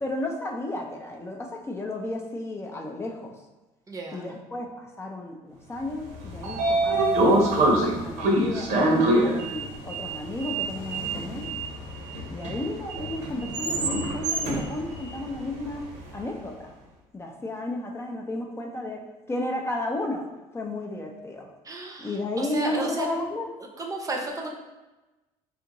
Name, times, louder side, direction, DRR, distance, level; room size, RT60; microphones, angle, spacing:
voice 1, 0.0-3.3 4.1-7.4 7.9-11.5 12.3-16.7 17.1-20.3 20.5-21.5 22.0-23.5, left 2 dB, 20° left, 1 dB, 0.5 m, -33 dB
voice 2, 3.9-4.3 21.6-23.1 23.8-24.5, right 2 dB, 25° right, 1 dB, 0.7 m, -33 dB
Sliding door, 6.0-16.2, right 1 dB, 70° right, 0.7 m, -26 dB
3.6 x 2.4 x 2.9 m, 1.1 s
supercardioid pair, 85°, 13 cm